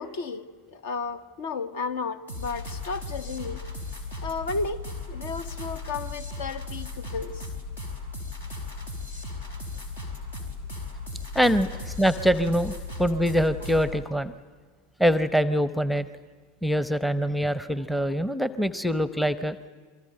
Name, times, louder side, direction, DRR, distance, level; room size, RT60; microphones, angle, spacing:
voice 1, 0.0-3.6 4.2-4.8 5.1-7.5, left 4 dB, 60° left, 12 dB, 1.2 m, -33 dB
sound 1, 2.3-14.0, left 3 dB, 75° left, 4.8 m, -36 dB
voice 2, 11.3-12.7 13.0-14.3 15.0-16.1 16.6-19.6, equal, ahead, 14 dB, 0.8 m, -24 dB
28.0 x 24.5 x 7.9 m, 1.5 s
figure-of-eight pair, 85°, 0 cm